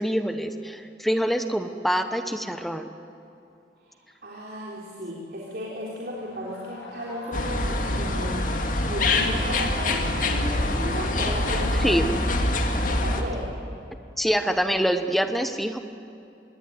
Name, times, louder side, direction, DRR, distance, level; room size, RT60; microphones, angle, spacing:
voice 1, 0.0-2.9 11.7-12.1 14.2-15.8, equal, ahead, 8 dB, 1.0 m, -25 dB
voice 2, 3.8-12.2 12.8-13.5, equal, 55° right, -4 dB, 3.9 m, -35 dB
sound 1, 6.1-10.8, equal, 85° left, 7.8 m, -45 dB
sound 2, 7.3-13.2, left 2 dB, 45° left, 2.3 m, -25 dB
26.0 x 21.0 x 9.5 m, 2.7 s
head